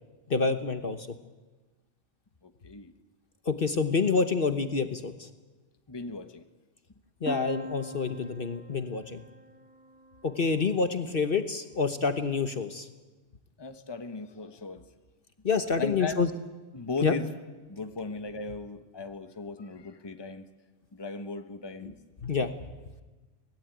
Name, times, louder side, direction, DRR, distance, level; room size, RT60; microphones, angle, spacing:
voice 1, 0.3-1.1 3.4-5.3 7.2-9.2 10.2-12.9 15.4-16.3 17.0-17.2 21.8-21.9 22.2-22.5, left 4 dB, 45° left, 9 dB, 1.3 m, -27 dB
voice 2, 2.4-2.9 5.9-6.4 13.6-14.9 15.8-16.3 16.7-17.3 17.7-20.5 20.9-21.9, left 3 dB, 20° left, 8 dB, 1.2 m, -37 dB
sound 1, 7.3-11.0, equal, 5° right, 2.3 m, -42 dB
24.5 x 19.0 x 9.2 m, 1.2 s
omnidirectional pair, 1.3 m